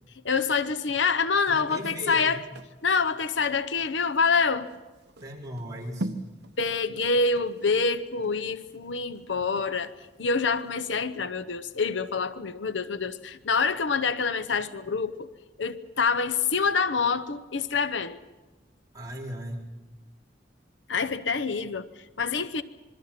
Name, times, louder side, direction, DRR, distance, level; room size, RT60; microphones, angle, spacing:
voice 1, 0.2-2.4 2.8-4.7 6.6-15.3 15.6-18.2 20.9-22.6, left 4 dB, 85° left, 14 dB, 0.9 m, -26 dB
voice 2, 1.5-2.4 5.2-6.1 18.9-19.6, equal, 20° right, -4 dB, 4.5 m, -37 dB
sound 1, 1.6-10.2 10.6-10.7, right 1 dB, 65° right, 1.1 m, -42 dB
26.5 x 22.5 x 5.9 m, 1.2 s
head